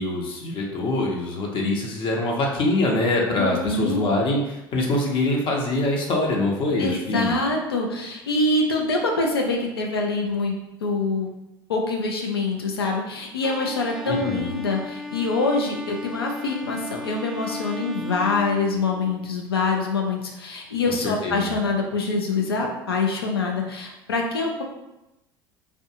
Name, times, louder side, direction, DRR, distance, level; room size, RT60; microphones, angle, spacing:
voice 1, 0.0-7.3 14.0-14.5 21.0-21.5, left 2 dB, 45° left, -1 dB, 0.7 m, -24 dB
voice 2, 3.3-4.0 6.8-11.3 11.7-24.6, left 3 dB, 85° left, 1 dB, 0.5 m, -25 dB
Bowed string instrument, 13.4-19.3, left 3 dB, ahead, 0.3 m, -36 dB
2.5 x 2.2 x 2.8 m, 0.94 s
hypercardioid pair, 70°, 12 cm